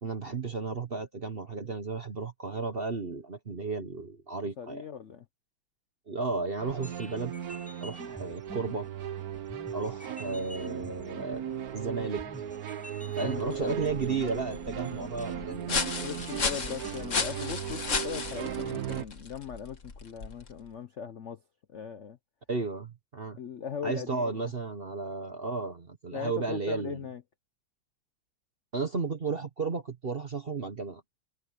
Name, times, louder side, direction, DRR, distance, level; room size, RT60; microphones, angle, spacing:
voice 1, 0.0-4.8 6.1-7.3 7.8-8.9 9.7-12.2 13.2-15.8 22.5-23.4 23.8-27.0 28.7-31.0, right 4 dB, 40° right, 0.9 m, -33 dB
voice 2, 4.6-5.2 13.0-13.8 16.0-21.4 21.7-22.2 23.4-24.5 26.1-27.2, left 8 dB, 60° left, 0.7 m, -39 dB
sound 1, 6.6-19.0, right 9 dB, 55° right, 1.2 m, -37 dB
sound 2, 6.7-17.3, equal, 5° left, 6.6 m, -48 dB
sound 3, 13.2-20.7, left 4 dB, 40° left, 1.9 m, -35 dB
omnidirectional pair, 2.3 m